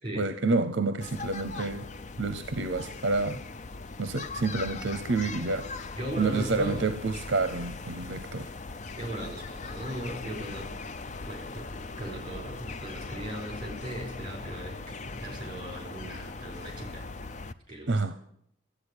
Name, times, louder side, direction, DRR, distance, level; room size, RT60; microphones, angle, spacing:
voice 1, 0.2-1.8 2.2-3.4 4.0-5.9 6.2-8.5 17.9-18.2, right 3 dB, 65° right, 0.7 m, -29 dB
sound 1, 1.0-17.5, left 3 dB, 35° left, 0.5 m, -40 dB
voice 2, 6.0-6.9 9.0-10.7 11.3-17.1 17.7-18.0, right 1 dB, 25° right, 4.3 m, -38 dB
12.0 x 8.5 x 9.7 m
head